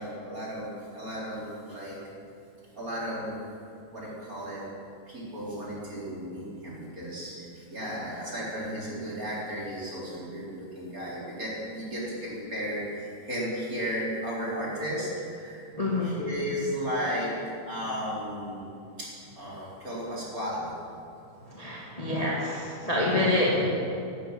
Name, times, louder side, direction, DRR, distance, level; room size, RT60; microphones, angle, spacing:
voice 1, 0.0-2.0 2.8-3.4 3.9-4.6 5.1-15.7 16.0-17.3 17.7-19.1 19.4-20.7, equal, 20° right, -6 dB, 4.2 m, -34 dB
voice 2, 15.8-16.2 21.5-23.6, left 2 dB, 15° left, -5 dB, 1.4 m, -26 dB
12.5 x 12.5 x 8.9 m, 2.5 s
omnidirectional pair, 4.3 m